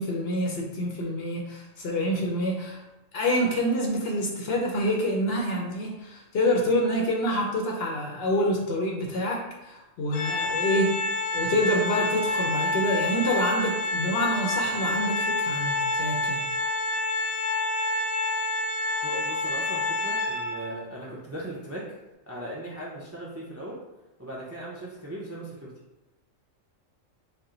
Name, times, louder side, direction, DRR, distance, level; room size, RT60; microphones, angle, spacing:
voice 1, 0.0-2.8 3.1-11.0 11.3-16.5, left 1 dB, 60° left, 0 dB, 0.7 m, -27 dB
Organ, 10.1-20.8, left 2 dB, 80° left, 1.0 m, -28 dB
voice 2, 19.0-21.9 22.3-23.8 24.2-25.7, right 1 dB, 25° right, -5 dB, 0.3 m, -38 dB
4.3 x 2.1 x 3.7 m, 1.0 s
omnidirectional pair, 1.3 m